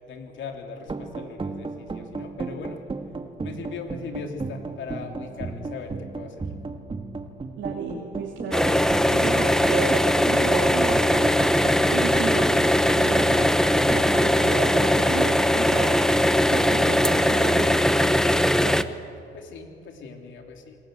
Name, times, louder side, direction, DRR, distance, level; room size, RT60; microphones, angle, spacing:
voice 1, 0.1-2.8 3.4-6.5 6.9-7.6 19.3-20.8, left 5 dB, 70° left, 3 dB, 3.5 m, -39 dB
sound 1, 0.8-17.7, right 3 dB, 25° right, 1.9 m, -35 dB
voice 2, 7.6-11.4 11.9-13.5 13.9-17.8 18.6-18.8, right 5 dB, 70° right, 0 dB, 2.9 m, -33 dB
sound 2, 8.5-18.8, left 1 dB, 5° left, 1.0 m, -20 dB
26.5 x 19.0 x 7.9 m, 2.5 s
cardioid pair, 90°, 20 cm